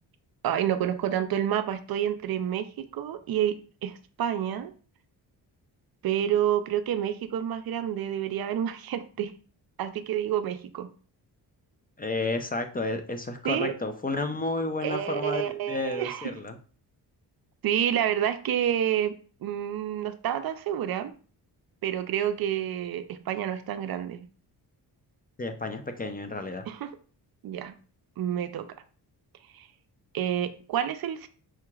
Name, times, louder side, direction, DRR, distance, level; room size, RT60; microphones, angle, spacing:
voice 1, 0.4-3.6 3.8-4.7 6.0-9.3 9.8-10.9 13.4-13.7 14.8-16.3 17.6-19.1 19.4-21.1 21.8-24.3 26.7-26.9 27.4-27.7 28.2-28.7 29.5-29.7 30.1-31.3, right 10 dB, 60° right, 10 dB, 0.5 m, -29 dB
voice 2, 12.0-16.6 25.4-26.6, left 2 dB, 20° left, 7 dB, 0.5 m, -31 dB
5.7 x 2.9 x 2.3 m, 0.39 s
cardioid pair, 85°, 41 cm